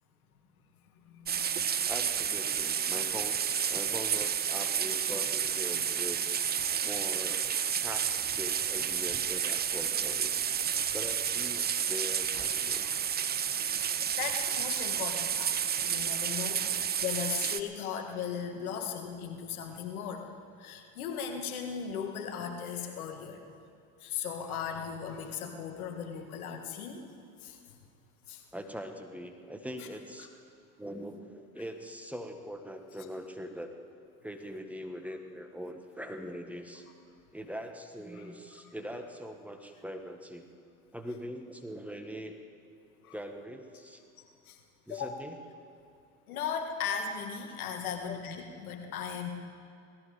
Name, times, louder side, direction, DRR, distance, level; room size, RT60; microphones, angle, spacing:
voice 1, 1.0-1.9 5.7-5.8 12.8-13.0 14.2-15.5 15.9-20.3 20.6-23.4 24.0-27.1 27.4-27.8 28.3-28.4 29.8-29.9 38.1-38.3 43.0-43.2 44.2-44.6 44.9-45.1 46.3-49.3, left 7 dB, 85° left, 5 dB, 1.8 m, -37 dB
sound 1, 1.3-17.6, right 8 dB, 25° right, 0.6 m, -31 dB
voice 2, 1.9-6.2 6.8-7.5 7.8-10.4 10.9-12.9 16.5-16.6 28.5-30.3 30.8-33.9 34.2-36.8 37.3-40.5 40.9-42.4 43.1-44.0 44.9-45.3, equal, 5° right, 5 dB, 1.6 m, -42 dB
18.5 x 14.0 x 5.1 m, 2.5 s
hypercardioid pair, 80°, 42 cm